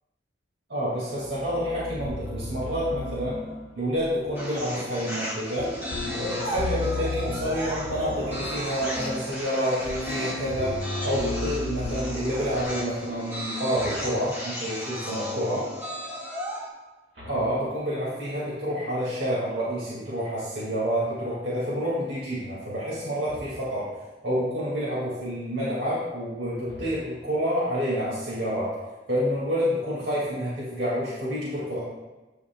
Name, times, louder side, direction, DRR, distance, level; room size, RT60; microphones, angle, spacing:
voice 1, 0.7-3.4 3.7-5.7 6.1-10.8 11.0-15.7 17.3-23.9 24.2-28.7 29.1-31.8, equal, 80° right, -9 dB, 2.5 m, -28 dB
sound 1, 1.2-13.3, left 1 dB, 90° left, 0.8 m, -35 dB
sound 2, 4.3-16.7, equal, 10° right, 1.8 m, -35 dB
sound 3, 10.4-11.2 13.7-14.5 17.1-18.3 23.3-23.9 26.6-27.5, equal, 60° right, 1.9 m, -45 dB
14.0 x 4.9 x 2.4 m, 1.1 s
head